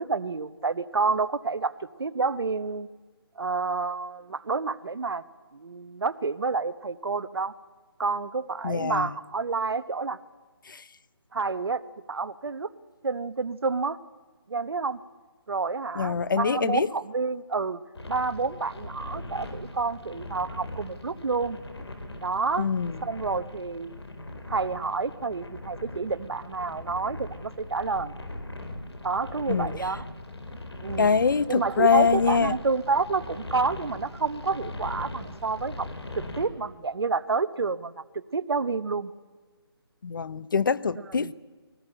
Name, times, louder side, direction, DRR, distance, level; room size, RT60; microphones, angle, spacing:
voice 1, 0.0-1.7 2.0-2.9 3.4-5.2 5.5-7.5 8.0-10.2 11.3-11.8 12.1-12.7 13.0-14.0 14.5-15.0 15.5-17.8 18.1-21.6 22.2-22.7 23.0-24.0 24.5-28.1 29.0-30.0 30.8-31.2 31.5-35.9 36.1-38.0 38.3-39.1 41.1-41.3, right 4 dB, 70° right, 13 dB, 1.1 m, -29 dB
voice 2, 8.6-9.1 10.7-10.8 16.0-16.9 22.6-23.0 29.5-29.7 31.0-32.5 40.0-41.3, left 5 dB, 50° left, 17 dB, 0.8 m, -24 dB
sound 1, 17.9-36.5, left 1 dB, 80° left, 4.3 m, -40 dB
21.0 x 18.0 x 8.8 m, 1.4 s
figure-of-eight pair, 165°, 14 cm